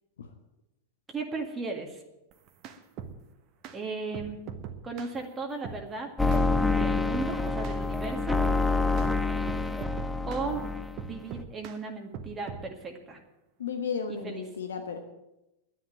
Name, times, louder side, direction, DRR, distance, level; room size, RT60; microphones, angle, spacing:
voice 1, 1.1-2.0 3.7-4.4 4.8-6.1 6.6-8.4 10.2-10.7 11.0-13.2 14.1-14.4, right 3 dB, 15° right, 1 dB, 2.0 m, -36 dB
sound 1, 2.3-3.2 3.6-3.8 4.1-5.2 5.6-5.8 6.3-6.5 6.8-7.3 7.6-7.8 8.3-8.5 9.0-9.1 9.5-10.5 11.0-11.8 12.1-12.7, right 7 dB, 40° right, 1.3 m, -40 dB
sound 2, 6.2-11.1, left 3 dB, 5° left, 0.8 m, -27 dB
voice 2, 13.6-15.0, left 6 dB, 65° left, 6 dB, 1.2 m, -33 dB
11.5 x 10.0 x 8.9 m, 0.94 s
figure-of-eight pair, 90°, 0 cm